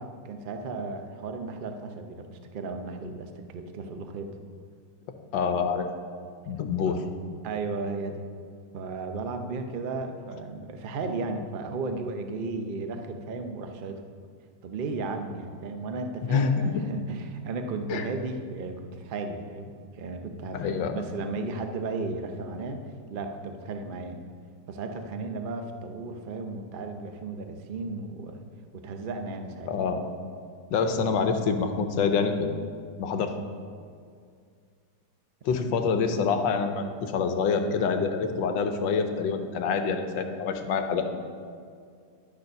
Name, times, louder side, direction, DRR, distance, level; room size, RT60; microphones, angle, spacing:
voice 1, 0.0-4.3 6.9-7.0 7.4-8.2 8.7-14.0 14.6-22.8 23.1-24.2 24.7-28.4 28.7-29.7 30.9-31.1 35.5-35.6, right 3 dB, 80° right, 6 dB, 0.4 m, -35 dB
voice 2, 5.3-5.9 6.5-7.0 16.3-16.8 17.9-18.1 20.5-21.0 29.7-30.1 30.7-32.5 33.0-33.3 35.4-41.1, left 5 dB, 80° left, 7 dB, 1.5 m, -26 dB
11.0 x 6.6 x 5.8 m, 2.2 s
omnidirectional pair, 2.0 m